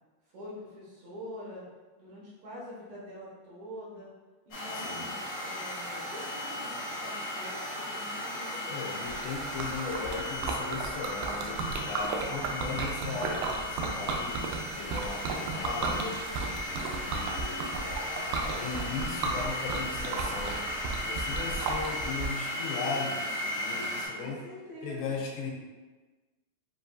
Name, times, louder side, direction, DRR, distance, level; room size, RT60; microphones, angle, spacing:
voice 1, 0.3-1.7 2.0-4.1 4.5-8.9 14.7-15.0 24.1-25.1, left 1 dB, 65° right, -6 dB, 2.0 m, -45 dB
sound 1, 4.5-24.1, left 1 dB, 65° left, 1.0 m, -36 dB
voice 2, 8.7-16.2 16.6-20.6 21.0-24.4 24.8-25.5, left 4 dB, 85° left, -2 dB, 2.5 m, -38 dB
Liquid, 9.1-22.3, right 3 dB, 80° right, 2.0 m, -34 dB
7.3 x 2.6 x 2.3 m, 1.3 s
omnidirectional pair, 4.3 m